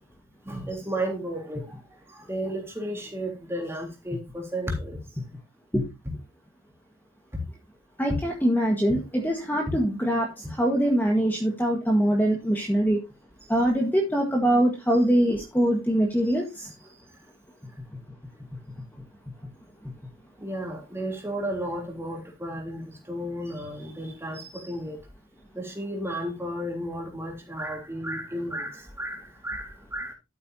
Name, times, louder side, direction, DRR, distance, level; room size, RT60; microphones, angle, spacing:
voice 1, 0.4-1.7 2.3-5.0 8.1-8.2 8.9-9.0 20.4-25.0 25.5-30.1, equal, 10° right, 3.4 m, -33 dB
voice 2, 8.0-10.3 10.6-13.0 13.5-16.7, right 1 dB, 10° left, 1.7 m, -23 dB
12.5 x 8.8 x 2.8 m
head